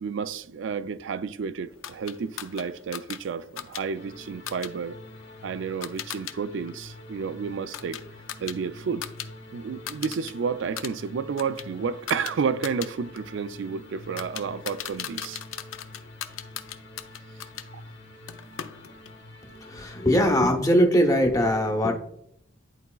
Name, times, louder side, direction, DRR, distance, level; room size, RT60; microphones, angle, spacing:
voice 1, 0.0-5.0 5.4-8.0 8.4-9.1 9.5-15.4 17.7-17.8, right 6 dB, 70° right, 0.4 m, -31 dB
sound 1, 1.8-6.4 6.7-9.3 9.6-10.3 10.6-17.7 18.3-19.2, left 10 dB, 90° left, 0.5 m, -39 dB
sound 2, 3.9-20.4, left 1 dB, 65° left, 1.2 m, -46 dB
voice 2, 19.6-22.0, equal, 15° left, 0.8 m, -21 dB
11.0 x 4.0 x 2.3 m
head